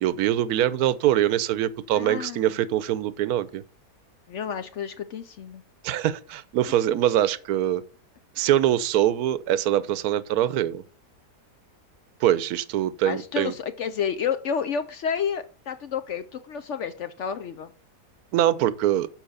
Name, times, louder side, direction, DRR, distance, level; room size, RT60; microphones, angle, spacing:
voice 1, 0.0-3.6 5.8-7.8 8.4-10.8 12.2-13.5 18.3-19.1, right 12 dB, 70° right, 1.1 m, -23 dB
voice 2, 1.9-2.6 4.3-5.6 13.0-17.7, left 7 dB, 65° left, 0.7 m, -30 dB
7.4 x 4.7 x 6.5 m
omnidirectional pair, 1.8 m